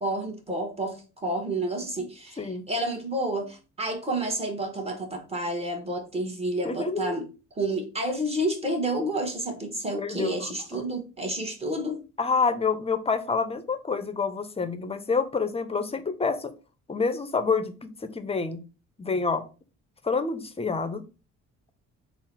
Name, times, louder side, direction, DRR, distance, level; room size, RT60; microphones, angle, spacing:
voice 1, 0.0-7.3 7.6-12.0, right 1 dB, 20° right, 1.0 m, -30 dB
voice 2, 6.6-7.2 10.0-10.8 12.2-16.5 16.9-18.6 19.0-19.4 20.0-21.0, left 4 dB, 20° left, 0.6 m, -28 dB
3.8 x 2.0 x 4.3 m
cardioid pair, 90°, 30 cm